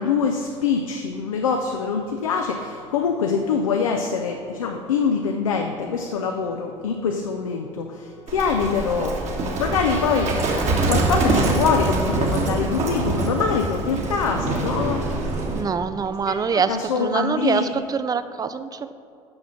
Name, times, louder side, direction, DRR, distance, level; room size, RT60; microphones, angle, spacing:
voice 1, 0.0-9.2 9.6-10.6 10.9-15.0 16.3-17.7, left 5 dB, 75° left, 4 dB, 0.5 m, -24 dB
Trumpet, 7.9-12.6, equal, 10° left, 1.0 m, -43 dB
Livestock farm animals working animals, 8.3-15.6, right 2 dB, 40° right, 1.4 m, -24 dB
voice 2, 15.5-18.9, right 6 dB, 20° right, 12 dB, 0.4 m, -25 dB
6.2 x 6.1 x 5.9 m, 2.6 s
figure-of-eight pair, 55°, 17 cm